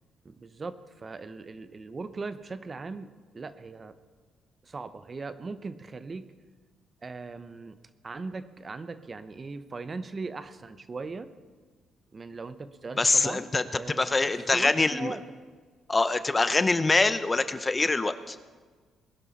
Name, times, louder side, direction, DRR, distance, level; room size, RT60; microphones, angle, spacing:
voice 1, 0.2-4.0 4.6-6.3 7.0-7.8 8.0-11.3 12.1-15.2, right 4 dB, 35° right, 12 dB, 0.8 m, -39 dB
voice 2, 13.0-13.6 14.0-15.2 15.9-18.4, left 3 dB, 25° left, 12 dB, 0.7 m, -24 dB
20.5 x 11.5 x 4.2 m, 1.5 s
cardioid pair, 90°, 0 cm